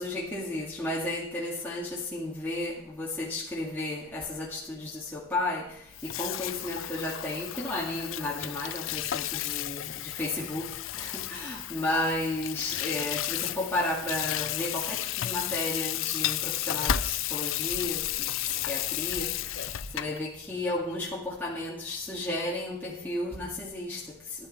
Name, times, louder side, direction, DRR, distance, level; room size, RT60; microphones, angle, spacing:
voice 1, 0.0-19.3 19.9-24.2, left 2 dB, 10° left, -7 dB, 2.0 m, -33 dB
Water tap faucet / Sink (filling or washing), 5.9-20.2, left 14 dB, 85° left, 0.4 m, -33 dB
sound 1, 13.1-13.2 13.6-14.1 14.9-15.0 15.4-15.6 16.2-20.0, left 1 dB, 65° left, 1.1 m, -39 dB
13.5 x 11.0 x 4.2 m, 0.71 s
head